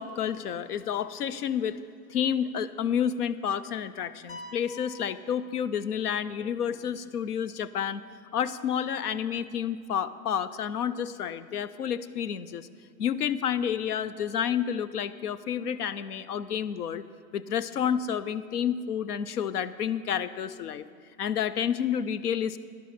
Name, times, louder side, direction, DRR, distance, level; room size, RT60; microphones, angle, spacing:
voice 1, 0.0-1.8 2.1-8.0 8.3-12.7 13.0-17.0 17.3-20.9 21.2-22.6, left 8 dB, 85° left, 15 dB, 0.6 m, -30 dB
sound 1, 4.3-6.2, left 2 dB, 55° left, 2.0 m, -47 dB
12.5 x 10.5 x 4.3 m, 2.3 s
hypercardioid pair, 110°, 45 cm